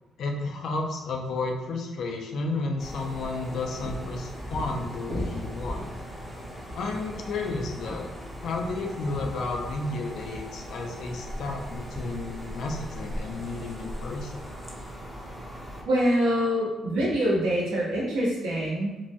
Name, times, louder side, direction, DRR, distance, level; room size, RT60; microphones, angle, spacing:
voice 1, 0.2-5.9 6.7-8.1 8.4-14.5, left 3 dB, 70° left, 2 dB, 0.4 m, -32 dB
sound 1, 2.8-15.8, equal, 5° right, 0.6 m, -37 dB
voice 2, 15.8-19.0, equal, 85° right, -6 dB, 1.0 m, -25 dB
2.9 x 2.1 x 2.7 m, 1.1 s
cardioid pair, 90°, 0 cm